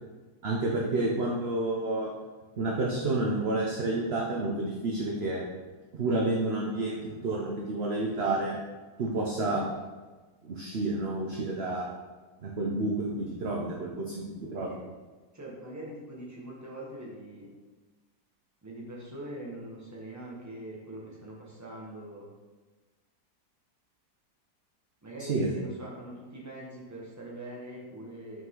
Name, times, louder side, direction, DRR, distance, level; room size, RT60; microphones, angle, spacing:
voice 1, 0.4-2.1 2.6-5.4 5.9-8.6 9.0-9.7 10.4-11.9 12.4-14.7 25.3-25.5, right 2 dB, 50° right, -2 dB, 0.9 m, -30 dB
voice 2, 15.3-17.5 18.6-22.3 25.0-28.4, right 1 dB, 10° right, -5 dB, 1.4 m, -42 dB
6.1 x 5.5 x 3.8 m, 1.3 s
omnidirectional pair, 1.7 m